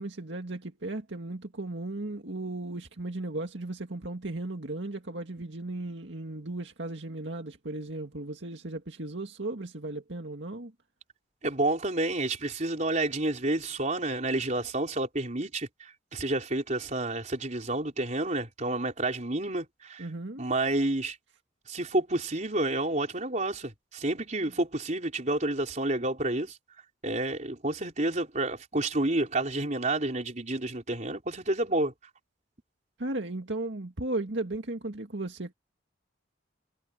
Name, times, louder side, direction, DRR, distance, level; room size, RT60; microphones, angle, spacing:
voice 1, 0.0-10.7 20.0-20.5 33.0-35.5, right 2 dB, 70° right, 2.1 m, -36 dB
voice 2, 11.4-20.1 20.4-21.2 21.7-26.6 27.0-31.9, right 2 dB, 40° right, 4.2 m, -29 dB
head